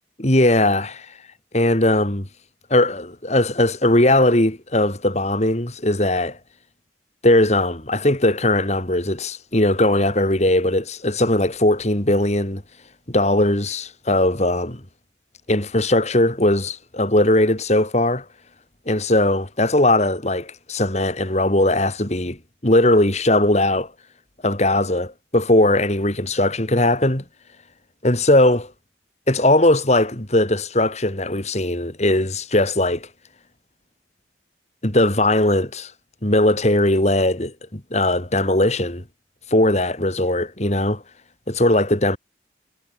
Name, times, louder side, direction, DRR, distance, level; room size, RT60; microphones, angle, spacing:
voice 1, 0.2-1.1 1.5-2.3 2.7-6.4 7.2-12.6 13.1-14.8 15.5-18.2 18.9-23.9 24.4-27.2 28.0-28.7 29.3-33.1 34.8-35.9 36.2-39.0 39.5-41.0 41.5-42.2, left 1 dB, 40° left, 3.0 m, -19 dB
head